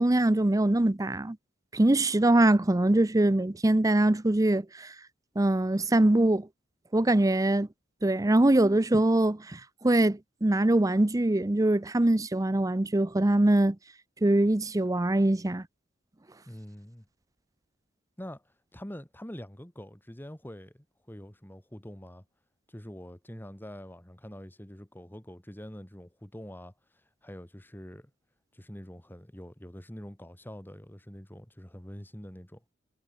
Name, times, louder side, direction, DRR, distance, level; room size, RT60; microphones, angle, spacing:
voice 1, 0.0-1.4 1.7-4.9 5.4-6.5 6.9-7.7 8.0-13.8 14.2-15.6, right 1 dB, 20° right, 0.6 m, -23 dB
voice 2, 16.5-17.1 18.2-22.2 22.7-26.7 27.2-28.1 28.5-32.6, equal, 10° left, 1.7 m, -45 dB
head